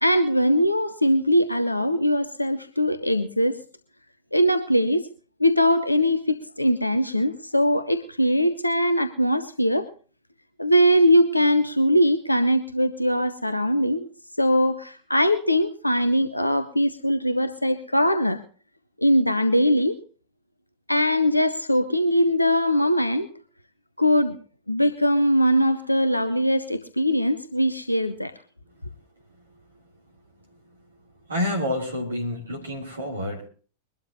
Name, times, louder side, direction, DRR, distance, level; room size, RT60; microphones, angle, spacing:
voice 1, 0.0-3.6 4.3-5.1 5.4-9.9 10.6-14.1 14.4-18.4 19.0-20.0 20.9-23.3 24.0-24.4 24.7-28.3, equal, 85° left, 10 dB, 0.7 m, -21 dB
voice 2, 31.3-33.5, left 1 dB, 75° right, 0 dB, 2.9 m, -28 dB
23.0 x 12.5 x 2.7 m, 0.38 s
figure-of-eight pair, 90°, 0 cm